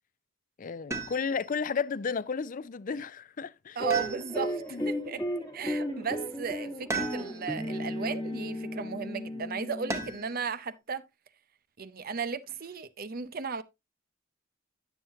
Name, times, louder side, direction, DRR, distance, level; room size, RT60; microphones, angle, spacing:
voice 1, 0.6-3.8 4.7-4.8, left 5 dB, 40° left, 0.4 m, -33 dB
sound 1, 0.9-1.5 3.9-4.7 6.9-7.6 9.9-10.4 12.1-12.7, right 3 dB, 15° right, 1.0 m, -36 dB
sound 2, 3.8-10.3, equal, 15° left, 1.3 m, -35 dB
voice 2, 3.8-5.2 5.5-11.0 11.8-13.6, right 5 dB, 45° right, 0.6 m, -35 dB
10.5 x 7.2 x 2.8 m
head